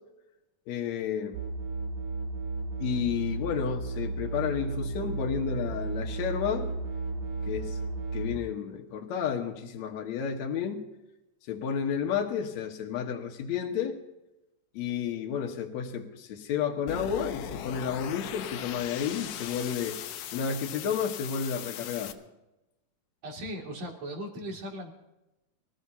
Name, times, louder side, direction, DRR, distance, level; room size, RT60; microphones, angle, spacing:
voice 1, 0.7-1.4 2.8-6.7 7.4-7.8 8.1-10.8 11.5-14.0 14.7-20.0 20.3-22.1, left 7 dB, 60° left, 2.5 m, -31 dB
sound 1, 1.3-8.4, right 3 dB, 70° right, 3.8 m, -34 dB
sound 2, 16.9-22.1, left 9 dB, 90° left, 2.6 m, -39 dB
voice 2, 23.2-24.9, equal, 55° right, 3.8 m, -38 dB
24.5 x 15.0 x 2.9 m
omnidirectional pair, 3.8 m